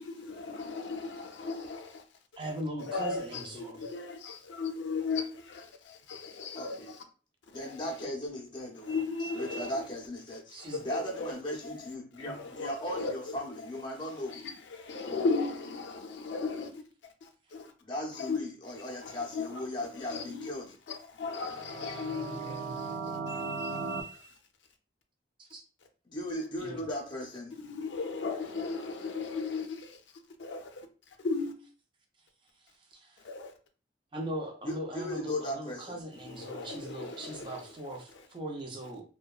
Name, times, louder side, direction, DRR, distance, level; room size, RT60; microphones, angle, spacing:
voice 1, 0.1-2.0 2.8-7.0 7.5-7.8 8.8-9.8 10.7-10.8 11.1-11.3 11.6-11.7 12.3-13.1 14.3-16.8 17.2-17.7 18.2-18.4 18.9-19.5 20.1-20.5 20.9-23.0 23.3-24.4 27.6-30.0 30.4-30.8 31.2-31.5 33.2-33.5 36.2-37.6, left 4 dB, 80° left, 0.4 m, -36 dB
voice 2, 2.4-3.9 10.5-10.8 25.4-25.6 26.6-26.8 32.9-33.3 34.1-39.0, right 1 dB, 30° right, 0.5 m, -39 dB
voice 3, 6.5-6.9 7.5-8.9 9.3-14.4 17.8-20.7 26.1-27.5 34.6-36.0, left 1 dB, 25° left, 0.6 m, -37 dB
sound 1, 21.5-24.0, right 4 dB, 85° right, 0.4 m, -37 dB
2.7 x 2.2 x 2.3 m
head